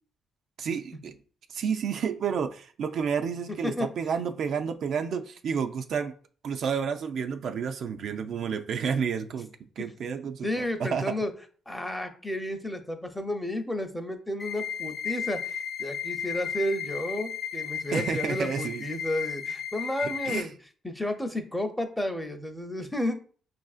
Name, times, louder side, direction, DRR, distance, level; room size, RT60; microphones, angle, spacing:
voice 1, 0.6-1.1 1.5-6.1 6.4-9.5 9.8-11.1 17.9-18.8 20.0-20.5, right 6 dB, 65° right, 7 dB, 0.3 m, -30 dB
voice 2, 10.4-11.3 11.7-20.5 20.8-23.1, left 1 dB, 5° left, 6 dB, 0.6 m, -32 dB
sound 1, 14.4-20.4, left 8 dB, 45° left, 0.3 m, -34 dB
5.3 x 2.5 x 2.4 m, 0.41 s
cardioid pair, 90°, 0 cm